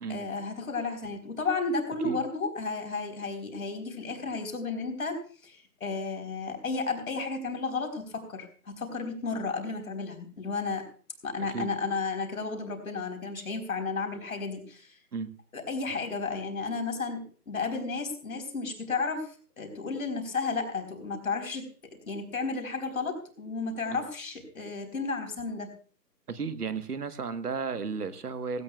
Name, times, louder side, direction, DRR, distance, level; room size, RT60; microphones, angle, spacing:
voice 1, 0.1-10.8 11.2-15.0 15.5-21.7 22.1-25.7, left 4 dB, 55° left, 5 dB, 4.1 m, -33 dB
voice 2, 26.3-28.6, right 5 dB, 65° right, 11 dB, 1.4 m, -34 dB
17.5 x 17.0 x 2.4 m, 0.43 s
figure-of-eight pair, 165°, 49 cm